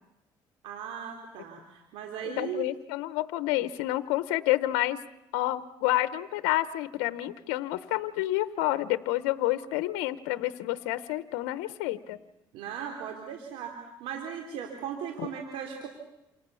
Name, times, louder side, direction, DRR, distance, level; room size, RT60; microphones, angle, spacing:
voice 1, 0.6-2.6 12.5-15.9, right 8 dB, 80° right, 2 dB, 3.7 m, -37 dB
voice 2, 2.2-5.0 5.3-12.2 15.2-15.3, left 16 dB, 90° left, 13 dB, 1.0 m, -29 dB
28.0 x 27.5 x 7.1 m, 0.91 s
supercardioid pair, 80°, 9 cm